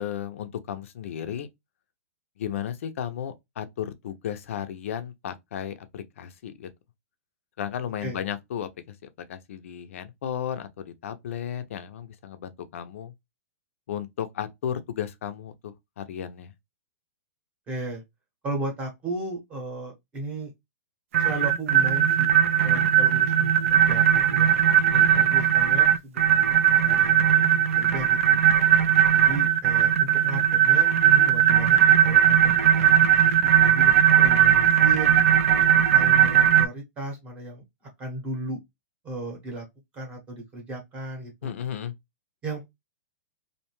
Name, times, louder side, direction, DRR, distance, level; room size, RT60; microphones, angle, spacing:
voice 1, 0.0-1.5 2.4-6.7 7.6-8.7 9.0-13.1 13.9-16.5 24.9-25.3 41.4-41.9, left 9 dB, 60° left, 0.5 m, -34 dB
voice 2, 17.7-18.0 18.4-20.5 21.2-22.3 22.6-24.5 25.1-28.4 29.2-35.1 35.7-37.6 38.0-38.6 39.0-39.6 39.9-41.5 42.4-42.6, right 2 dB, 15° right, 0.9 m, -35 dB
sound 1, 21.1-36.7, right 10 dB, 60° right, 0.3 m, -19 dB
2.6 x 2.1 x 2.9 m
hypercardioid pair, 170°, 8 cm